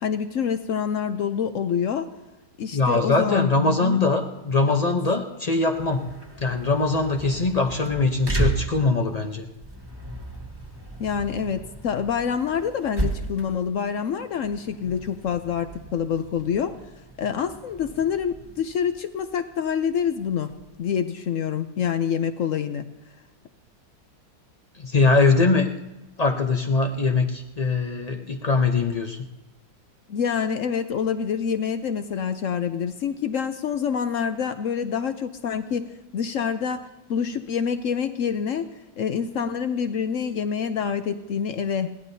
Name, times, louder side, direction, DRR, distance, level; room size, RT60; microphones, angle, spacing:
voice 1, 0.0-2.1 2.6-4.0 4.8-4.9 11.0-16.8 17.2-20.5 20.8-22.9 30.1-38.7 39.0-41.9, left 7 dB, 70° left, 10 dB, 0.8 m, -26 dB
voice 2, 2.7-6.1 6.4-9.5 24.7-25.7 26.2-29.2, left 3 dB, 85° left, 3 dB, 0.3 m, -22 dB
sound 1, 5.6-20.9, right 2 dB, 15° right, 1.4 m, -35 dB
21.5 x 16.5 x 2.7 m, 1.0 s
omnidirectional pair, 2.0 m